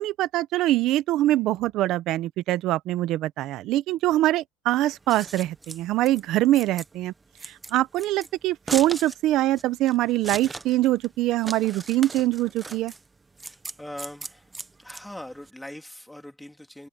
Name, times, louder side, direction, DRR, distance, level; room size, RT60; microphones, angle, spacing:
voice 1, 0.0-7.1 7.4-12.9, right 15 dB, 50° right, 0.9 m, -24 dB
Scissors, 4.9-15.5, right 3 dB, 15° right, 1.0 m, -39 dB
voice 2, 13.4-14.5 14.8-16.9, left 1 dB, 5° left, 2.8 m, -41 dB
cardioid pair, 135°, 0 cm